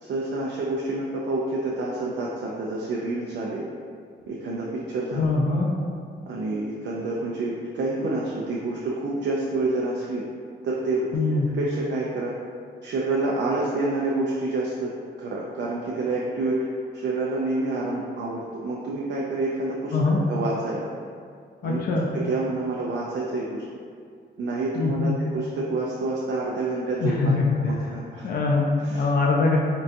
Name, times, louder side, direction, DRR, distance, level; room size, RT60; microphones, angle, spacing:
voice 1, 0.0-3.7 4.3-5.2 6.3-10.2 10.6-11.2 11.5-12.3 12.8-14.9 15.2-16.6 16.9-20.9 21.6-21.8 22.1-23.6 24.4-28.3 28.8-29.1, right 2 dB, 70° right, -4 dB, 0.4 m, -28 dB
voice 2, 5.1-5.7 11.1-11.5 19.9-20.2 21.6-22.1 24.8-25.2 27.0-27.5 28.2-29.6, left 3 dB, 55° left, -2 dB, 0.4 m, -23 dB
3.8 x 2.2 x 2.5 m, 2.2 s
cardioid pair, 110°, 19 cm